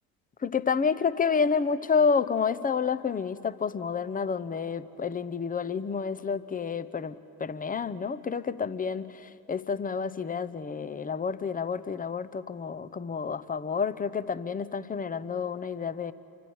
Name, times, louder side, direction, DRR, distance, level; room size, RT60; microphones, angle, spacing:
voice 1, 0.4-16.1, left 5 dB, 20° left, 15 dB, 0.8 m, -29 dB
28.0 x 24.5 x 4.8 m, 2.8 s
hypercardioid pair, 65°, 45 cm